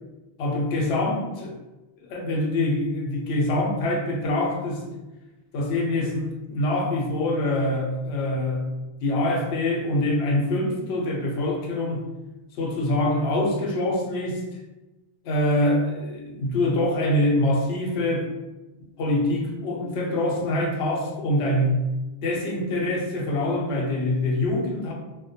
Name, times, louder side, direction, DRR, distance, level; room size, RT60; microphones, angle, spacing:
voice 1, 0.4-1.5 2.0-4.8 5.5-8.6 9.0-12.0 12.6-14.4 15.2-18.3 19.0-21.8 22.2-24.9, left 1 dB, 85° left, -1 dB, 0.8 m, -24 dB
2.2 x 2.1 x 2.7 m, 1.1 s
omnidirectional pair, 1.0 m